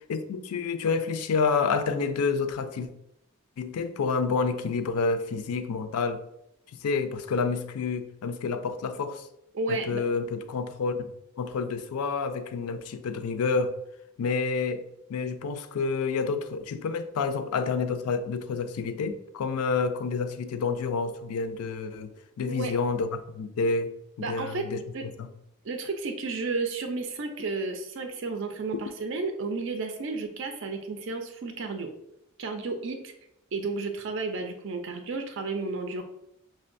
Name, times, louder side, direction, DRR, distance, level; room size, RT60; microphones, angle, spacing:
voice 1, 0.1-2.9 3.6-6.2 6.8-9.2 9.7-11.1 11.4-13.7 14.2-14.8 15.1-22.1 22.4-23.9 24.3-24.8 25.2-25.3, left 4 dB, 85° left, 10 dB, 0.4 m, -29 dB
voice 2, 9.5-10.0 22.4-22.7 24.2-24.7 24.9-25.0 25.6-31.9 32.4-33.1 33.5-36.0, right 3 dB, 55° right, 5 dB, 0.4 m, -32 dB
5.9 x 2.2 x 2.5 m, 0.81 s
head